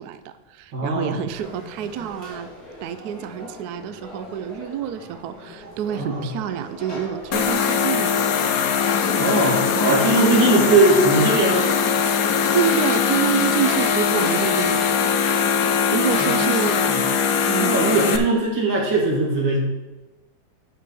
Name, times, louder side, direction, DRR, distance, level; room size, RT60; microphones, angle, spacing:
voice 1, 0.0-2.5 2.8-8.5 9.8-10.2 12.5-14.8 15.9-16.7 17.4-17.8, right 9 dB, 70° right, 11 dB, 1.0 m, -27 dB
voice 2, 0.7-1.2 5.9-6.3 9.2-11.7 16.2-17.0 17.6-19.6, right 2 dB, 85° right, -2 dB, 2.9 m, -20 dB
Conversation / Crowd, 1.3-7.5, left 1 dB, 20° left, 3.3 m, -41 dB
sound 1, 7.3-18.2, left 6 dB, 60° left, 1.0 m, -21 dB
6.5 x 6.0 x 6.8 m, 1.1 s
omnidirectional pair, 2.0 m